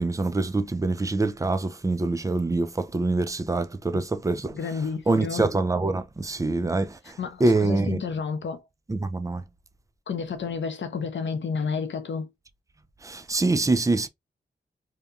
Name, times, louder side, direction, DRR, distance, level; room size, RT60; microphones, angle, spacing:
voice 1, 0.0-4.5 5.1-8.0 8.9-9.4 13.0-14.1, right 2 dB, 15° right, 0.4 m, -25 dB
voice 2, 4.5-5.5 7.0-8.6 10.1-12.3, left 5 dB, 65° left, 0.7 m, -31 dB
2.8 x 2.2 x 2.4 m
cardioid pair, 50°, 20 cm